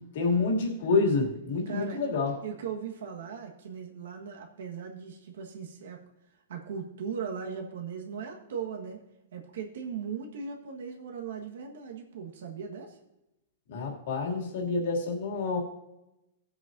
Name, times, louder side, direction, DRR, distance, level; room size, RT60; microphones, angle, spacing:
voice 1, 0.1-2.3 13.7-15.6, left 3 dB, 55° left, 0 dB, 2.6 m, -28 dB
voice 2, 1.6-2.0 2.4-6.0 6.5-9.0 9.3-13.0, right 6 dB, 70° right, 2 dB, 1.5 m, -38 dB
18.0 x 7.9 x 2.7 m, 0.91 s
supercardioid pair, 175°, 0 cm